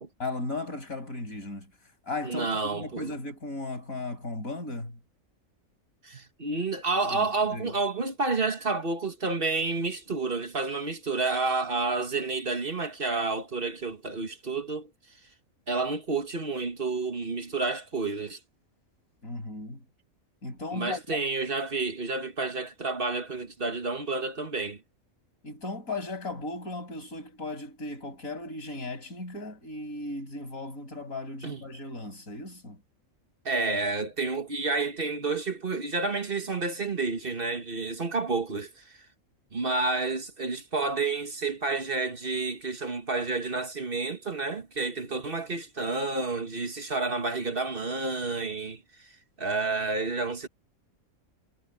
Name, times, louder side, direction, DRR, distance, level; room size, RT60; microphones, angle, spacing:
voice 1, 0.2-1.7 2.1-5.0 7.1-7.7 19.2-19.8 20.4-21.2 25.4-32.8, left 2 dB, 90° left, 6.7 m, -36 dB
voice 2, 2.2-3.1 6.0-14.9 15.7-18.4 20.7-24.8 31.4-31.6 33.5-38.7 39.5-49.1 49.4-50.5, right 3 dB, 45° right, 1.7 m, -30 dB
omnidirectional pair, 1.4 m